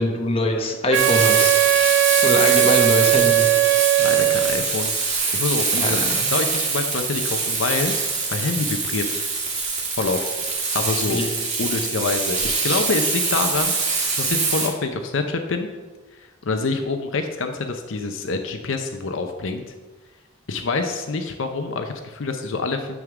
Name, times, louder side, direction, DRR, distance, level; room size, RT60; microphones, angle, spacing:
voice 1, 0.0-1.6 2.2-3.5 5.8-6.2 11.1-11.3, left 1 dB, 30° left, 2 dB, 1.0 m, -23 dB
Frying (food), 0.9-14.7, right 4 dB, 35° right, 1.6 m, -24 dB
Wind instrument woodwind instrument, 0.9-4.7, right 13 dB, 60° right, 0.4 m, -18 dB
voice 2, 4.0-4.9 5.3-9.2 10.0-10.3 10.7-11.2 11.6-15.7 16.4-19.6 20.5-23.0, left 3 dB, 75° left, 6 dB, 0.6 m, -26 dB
9.6 x 3.7 x 5.9 m, 1.3 s
head